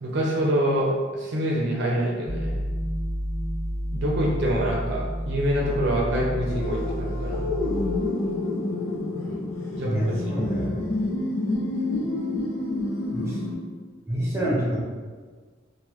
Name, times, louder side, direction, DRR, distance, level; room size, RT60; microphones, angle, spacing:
voice 1, 0.0-2.5 3.9-7.5 9.7-10.3, equal, 60° right, -3 dB, 0.5 m, -26 dB
sound 1, 2.2-8.0, equal, 35° left, 0.9 m, -30 dB
sound 2, 6.5-13.5, left 2 dB, 85° left, 0.5 m, -28 dB
voice 2, 9.8-10.8 13.1-13.4 14.1-14.8, right 1 dB, 15° right, -6 dB, 0.9 m, -27 dB
3.6 x 2.2 x 3.0 m, 1.5 s
head